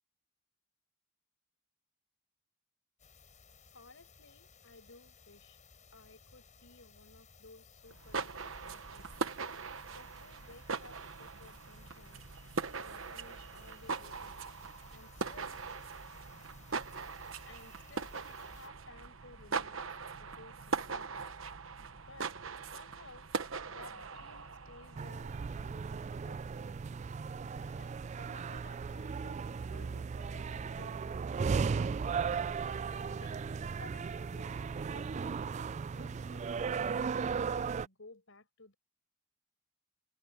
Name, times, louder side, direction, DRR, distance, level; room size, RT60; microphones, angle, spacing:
sound 1, 3.0-18.7, left 4 dB, 35° left, 7.3 m, -60 dB
voice 1, 3.7-5.6 5.9-9.3 9.9-12.3 12.8-14.5 14.9-15.6 17.5-19.9 20.1-21.3 22.1-22.3 22.7-23.3 23.7-26.8 27.6-32.4 32.9-35.5 35.9-38.7, left 3 dB, 70° left, 5.6 m, -57 dB
sound 2, 7.9-25.2, right 5 dB, 75° right, 1.2 m, -41 dB
sound 3, 25.0-37.9, right 5 dB, 35° right, 0.3 m, -36 dB
head